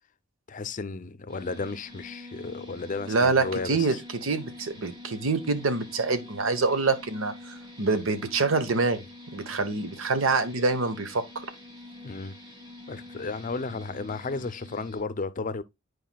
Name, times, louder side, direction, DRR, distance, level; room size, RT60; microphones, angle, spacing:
voice 1, 0.5-4.0 12.0-12.4 12.9-15.6, left 4 dB, 40° left, 0.5 m, -33 dB
sound 1, 1.3-15.0, left 2 dB, 20° right, 2.4 m, -46 dB
voice 2, 3.1-9.0 9.3-11.2, right 3 dB, 80° right, 0.9 m, -26 dB
9.3 x 4.7 x 2.2 m
head